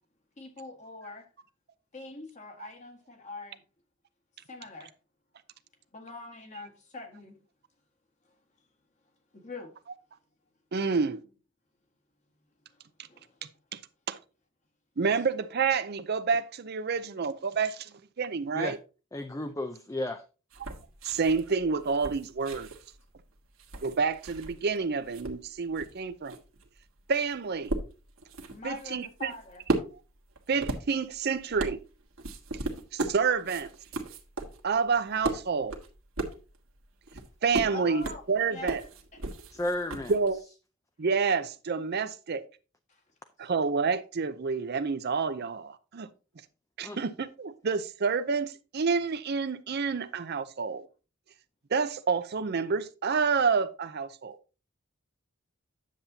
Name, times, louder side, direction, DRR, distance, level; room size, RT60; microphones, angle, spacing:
voice 1, 0.4-1.3 1.9-3.6 4.5-4.9 5.9-7.4 9.3-9.7 12.7-12.8 13.1-13.4 28.5-29.6 37.7-38.2 38.5-38.9 42.9-43.0 43.4-43.5, left 2 dB, 35° left, 1.6 m, -43 dB
voice 2, 10.7-11.2 13.7-13.8 14.1-14.2 15.0-17.9 18.2-18.8 21.0-22.7 23.8-26.4 27.1-27.7 28.6-29.3 30.5-31.8 32.9-33.7 34.6-35.8 37.4-38.8 40.1-40.4 41.0-42.4 43.4-46.1 46.8-50.8 51.7-54.4, right 5 dB, 50° right, 0.5 m, -28 dB
voice 3, 19.1-20.2 39.5-40.1 46.8-47.0, left 1 dB, 15° left, 0.5 m, -33 dB
sound 1, 20.5-24.8 25.0-40.4, right 2 dB, 75° right, 1.5 m, -37 dB
9.9 x 7.3 x 2.8 m
head